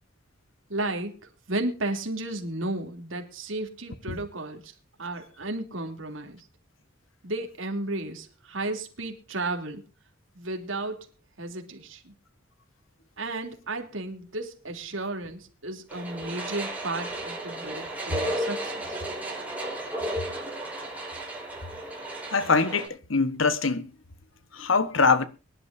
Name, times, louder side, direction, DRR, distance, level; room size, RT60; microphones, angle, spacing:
voice 1, 0.7-4.7 5.0-6.5 7.2-9.8 10.3-11.1 11.4-12.1 13.2-19.0, right 2 dB, 75° right, 3.1 m, -33 dB
sound 1, 15.9-22.9, right 1 dB, 10° right, 5.2 m, -34 dB
voice 2, 22.3-23.9 24.5-25.2, left 4 dB, 80° left, 1.3 m, -23 dB
23.5 x 11.5 x 2.7 m
head